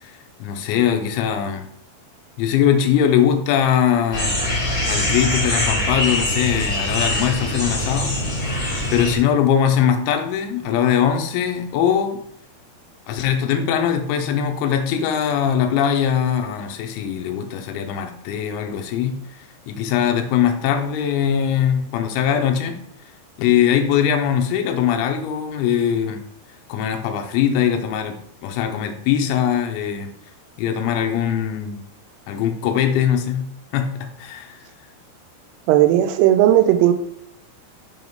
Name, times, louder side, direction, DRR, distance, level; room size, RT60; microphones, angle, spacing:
voice 1, 0.0-1.7 2.4-4.4 4.9-8.2 8.9-12.2 13.1-19.2 19.7-22.8 23.4-26.2 26.7-30.1 30.6-31.8 32.3-34.6, left 9 dB, 85° left, 2.9 m, -21 dB
sound 1, 4.1-9.1, left 1 dB, 40° left, 1.2 m, -23 dB
voice 2, 35.7-36.9, right 12 dB, 90° right, 3.2 m, -15 dB
7.8 x 2.9 x 5.3 m
omnidirectional pair, 5.7 m